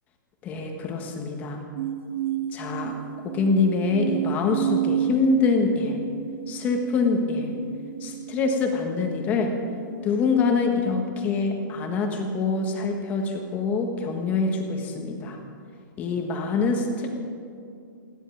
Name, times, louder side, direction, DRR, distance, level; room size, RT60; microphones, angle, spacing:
voice 1, 0.4-1.6 2.5-2.9 3.2-6.0 6.5-7.5 8.0-9.5 10.0-15.4 16.0-17.1, left 4 dB, 15° left, 3 dB, 1.4 m, -25 dB
sound 1, 1.8-9.2 9.8-10.3, right 11 dB, 30° right, 0.9 m, -31 dB
28.0 x 10.0 x 4.7 m, 2.4 s
hypercardioid pair, 175°, 11 cm